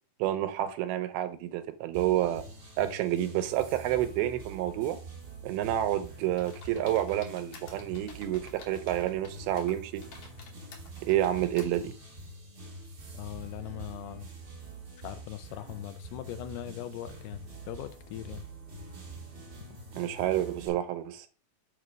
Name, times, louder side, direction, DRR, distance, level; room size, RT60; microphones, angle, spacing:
voice 1, 0.2-2.4 2.8-5.0 5.4-10.0 11.1-11.9 20.0-21.3, right 12 dB, 80° right, 2.5 m, -29 dB
sound 1, 1.9-20.7, right 3 dB, 60° right, 1.1 m, -46 dB
sound 2, 6.4-9.3 9.6-11.8, left 5 dB, 65° left, 1.8 m, -51 dB
voice 2, 13.1-14.3 15.0-18.4, left 13 dB, 90° left, 2.6 m, -40 dB
6.5 x 3.2 x 5.0 m
omnidirectional pair, 4.5 m